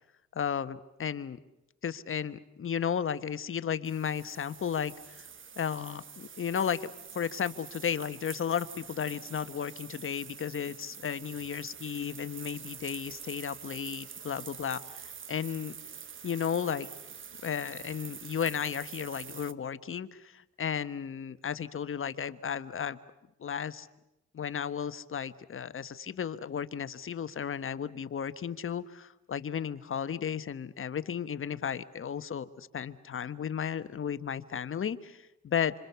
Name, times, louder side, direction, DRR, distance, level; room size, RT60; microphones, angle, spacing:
voice 1, 0.3-1.4 1.8-5.3 5.6-15.7 16.2-16.9 17.4-23.0 23.4-23.9 24.3-35.7, left 8 dB, 45° left, 13 dB, 1.3 m, -34 dB
sound 1, 3.8-19.5, right 7 dB, 40° right, 1.3 m, -46 dB
27.0 x 26.5 x 6.9 m, 0.90 s
cardioid pair, 90°, 30 cm